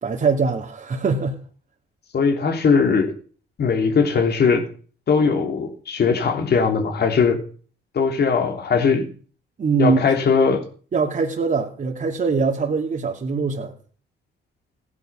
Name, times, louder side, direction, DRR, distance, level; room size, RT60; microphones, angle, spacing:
voice 1, 0.0-1.4 9.6-10.0 10.9-13.7, right 4 dB, 40° right, 2.5 m, -22 dB
voice 2, 2.1-3.1 3.6-4.6 5.1-7.4 7.9-9.1 9.8-10.6, left 5 dB, 55° left, 3.3 m, -19 dB
16.0 x 10.5 x 6.3 m
cardioid pair, 90°, 20 cm